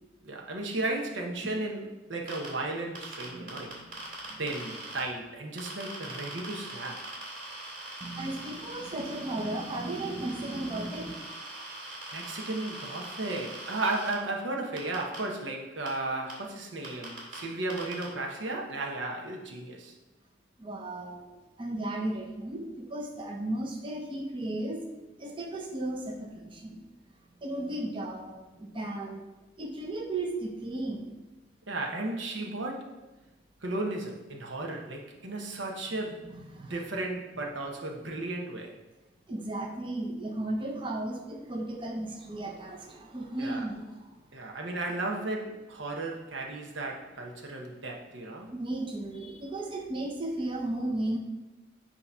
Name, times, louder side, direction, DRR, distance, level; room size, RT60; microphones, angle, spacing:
voice 1, 0.2-3.8 4.4-7.1 12.1-19.9 31.7-32.9 33.6-38.8 43.4-43.7 44.3-48.5, right 2 dB, 80° right, 1 dB, 1.0 m, -35 dB
sound 1, 2.3-2.5 3.0-5.0 5.6-14.1 14.8-15.2 15.9-16.0 16.3-16.4 16.8-17.4 17.7-18.0, right 2 dB, 45° right, 2.5 m, -42 dB
voice 2, 3.3-3.9 4.2-4.4 8.0-11.1 20.6-21.3 21.6-24.8 25.2-26.8 27.4-29.2 29.6-31.1 35.9-36.0 36.5-36.8 39.3-44.2 48.5-51.2, right 1 dB, 25° right, 1 dB, 0.7 m, -35 dB
8.3 x 2.9 x 5.5 m, 1.1 s
head